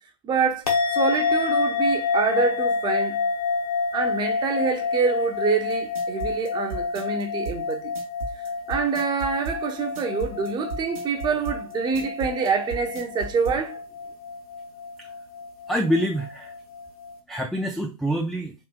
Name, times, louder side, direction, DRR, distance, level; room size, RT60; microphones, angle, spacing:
voice 1, 0.2-3.2 3.9-7.9 8.7-13.8, right 5 dB, 25° right, 0.9 m, -26 dB
sound 1, 0.7-17.2, left 4 dB, 85° left, 1.0 m, -28 dB
sound 2, 5.7-13.6, right 3 dB, 75° right, 1.0 m, -35 dB
voice 2, 15.7-16.5 17.3-18.5, equal, ahead, 0.4 m, -26 dB
4.2 x 2.9 x 2.3 m
figure-of-eight pair, 100°, 18 cm